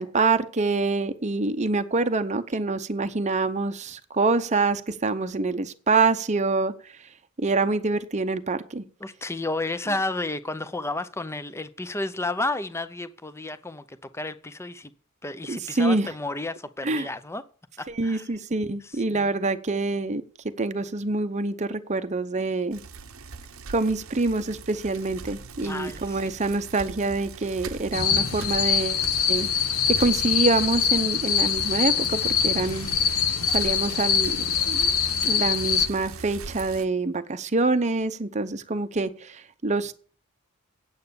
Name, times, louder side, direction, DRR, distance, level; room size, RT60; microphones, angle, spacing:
voice 1, 0.0-6.7 7.4-8.8 15.5-16.1 16.8-17.1 17.9-20.2 20.6-22.8 23.7-29.5 30.0-32.9 33.5-34.3 34.7-35.0 35.2-39.9, right 3 dB, 35° right, 0.7 m, -26 dB
voice 2, 9.0-14.9 15.2-17.4 17.8-18.3 18.8-19.3 25.6-26.3, left 2 dB, 10° left, 0.7 m, -32 dB
Bicycle, 22.7-36.8, right 4 dB, 70° right, 0.8 m, -40 dB
sound 1, 27.9-35.9, left 7 dB, 75° left, 1.1 m, -24 dB
9.1 x 8.0 x 6.9 m
head